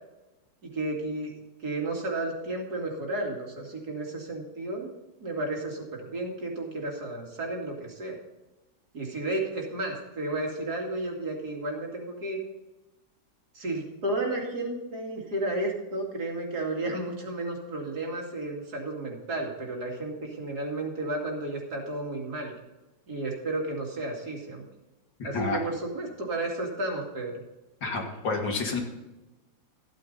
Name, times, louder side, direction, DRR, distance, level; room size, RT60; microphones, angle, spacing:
voice 1, 0.6-1.3 1.6-4.9 5.2-8.2 8.9-12.4 13.5-22.5 23.1-24.6 25.2-27.3, right 2 dB, 55° right, 0 dB, 2.9 m, -32 dB
voice 2, 25.2-25.6 27.8-28.8, left 3 dB, 70° left, 1 dB, 2.7 m, -29 dB
14.5 x 9.1 x 4.0 m, 1.0 s
omnidirectional pair, 2.0 m